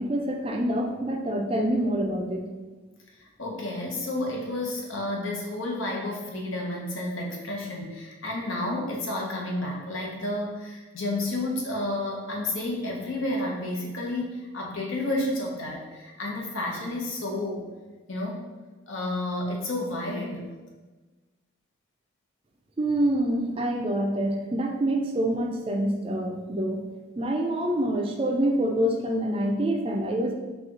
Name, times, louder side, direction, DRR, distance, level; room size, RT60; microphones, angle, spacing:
voice 1, 0.0-2.5 22.8-26.8 27.2-30.3, right 1 dB, 25° right, 2 dB, 0.3 m, -26 dB
voice 2, 3.2-17.6 18.1-18.5 18.9-20.5, left 1 dB, 80° left, -1 dB, 0.8 m, -31 dB
4.4 x 2.4 x 3.7 m, 1.3 s
head